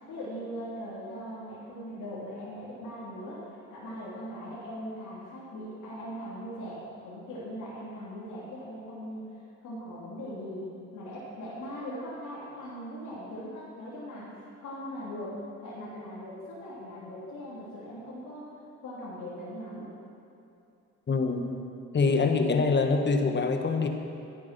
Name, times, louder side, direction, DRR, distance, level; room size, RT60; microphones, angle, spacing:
voice 1, 0.1-9.2 9.6-14.3 14.6-18.5 18.8-19.9, equal, 80° left, -8 dB, 3.0 m, -40 dB
voice 2, 21.1-21.5 21.9-23.9, left 4 dB, 35° left, 5 dB, 1.3 m, -24 dB
13.0 x 10.5 x 6.0 m, 2.7 s
cardioid pair, 90°, 30 cm